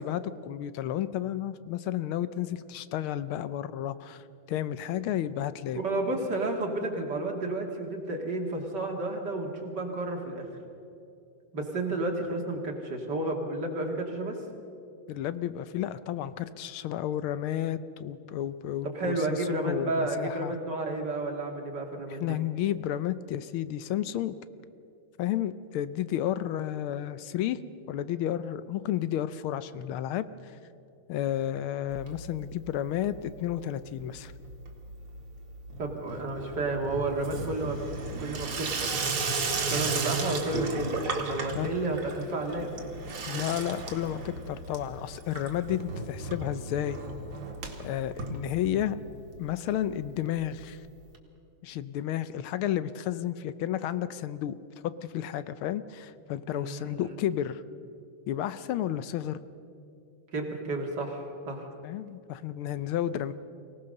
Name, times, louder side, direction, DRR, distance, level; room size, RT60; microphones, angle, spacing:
voice 1, 0.0-5.8 15.1-20.5 22.2-24.4 25.2-27.6 27.9-30.5 31.1-34.3 41.5-41.7 42.2-42.3 43.3-47.0 47.8-49.0 49.4-50.8 51.6-54.5 54.8-57.6 58.3-59.4 61.8-63.3, left 11 dB, 80° left, 14 dB, 1.6 m, -32 dB
voice 2, 5.8-10.5 11.5-14.4 18.8-22.3 35.8-37.8 38.2-38.9 39.7-42.7 56.5-57.1 60.3-61.7, right 2 dB, 55° right, 1 dB, 2.8 m, -31 dB
Water tap faucet / Sink (filling or washing), 31.9-32.7 32.9-33.5 33.8-49.1 49.4-49.5 49.7-49.8 50.0-50.1 51.1-51.2, right 3 dB, 75° right, 2.8 m, -35 dB
24.0 x 18.0 x 6.6 m, 2.6 s
omnidirectional pair, 2.3 m